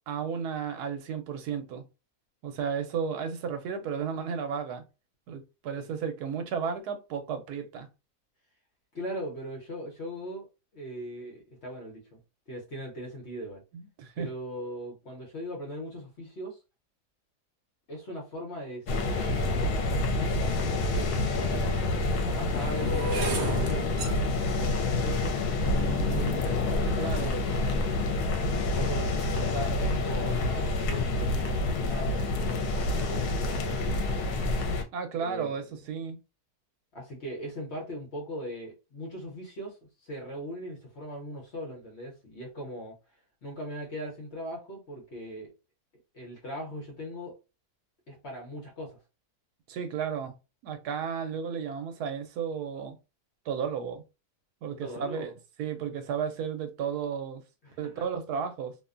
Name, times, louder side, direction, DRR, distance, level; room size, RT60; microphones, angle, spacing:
voice 1, 0.1-1.8 2.4-4.8 5.3-7.9 13.7-14.3 26.9-27.3 34.9-36.2 49.7-50.3 50.6-53.0 53.5-54.0 54.6-55.3 55.6-57.4 57.8-58.7, right 7 dB, 80° right, 1.1 m, -33 dB
voice 2, 8.9-10.5 10.7-12.2 12.5-13.6 14.2-16.6 17.9-24.0 24.6-28.2 28.6-34.3 35.2-35.5 36.9-43.0 43.4-45.5 46.1-47.4 48.1-49.0 54.8-55.3 57.6-58.0, equal, 50° left, 1.0 m, -40 dB
sound 1, 18.9-34.8, left 2 dB, 80° left, 1.1 m, -28 dB
sound 2, 20.8-20.9 21.7-27.8 28.5-28.9 29.1-29.5, right 4 dB, 60° right, 0.6 m, -36 dB
2.8 x 2.1 x 2.4 m
omnidirectional pair, 1.7 m